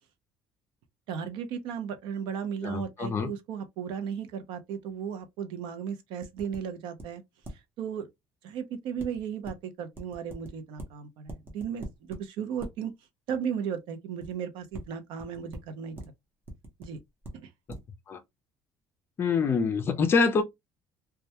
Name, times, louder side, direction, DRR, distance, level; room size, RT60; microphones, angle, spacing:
voice 1, 1.1-7.2 7.8-8.1 8.4-12.9 13.3-16.0 16.8-17.0 17.3-17.5, right 7 dB, 65° right, 0.5 m, -35 dB
voice 2, 2.6-3.3 18.1-18.2 19.2-20.4, left 5 dB, 25° left, 0.4 m, -25 dB
sound 1, 6.2-6.6 7.0-7.1 7.4-7.5 9.0-9.5 10.0-10.5 10.8-10.9 11.3-12.2 12.6-12.7 14.2-14.3 14.7-14.9 15.2-15.6 16.0-16.1 16.5-17.3 17.7-17.8, right 1 dB, 25° right, 0.7 m, -41 dB
2.2 x 2.1 x 2.7 m
cardioid pair, 175°, 9 cm